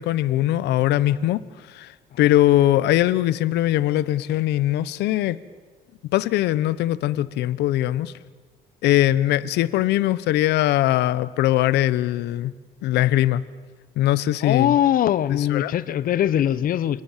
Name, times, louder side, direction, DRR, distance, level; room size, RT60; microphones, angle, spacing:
voice 1, 0.0-1.4 1.7-1.9 2.2-5.4 6.1-8.1 8.8-12.5 12.8-13.4 14.0-14.7 15.5-15.7, left 14 dB, 80° left, 1.1 m, -21 dB
voice 2, 14.4-17.0, left 11 dB, 55° left, 1.1 m, -21 dB
28.0 x 27.5 x 7.5 m
cardioid pair, 110°, 17 cm